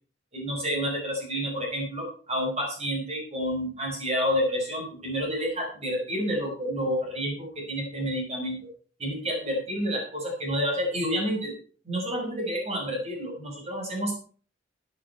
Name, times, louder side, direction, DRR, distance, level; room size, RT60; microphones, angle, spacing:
voice 1, 0.3-8.6 9.0-11.5 11.9-14.1, equal, 35° right, 0 dB, 5.5 m, -29 dB
14.5 x 8.7 x 4.5 m, 0.42 s
head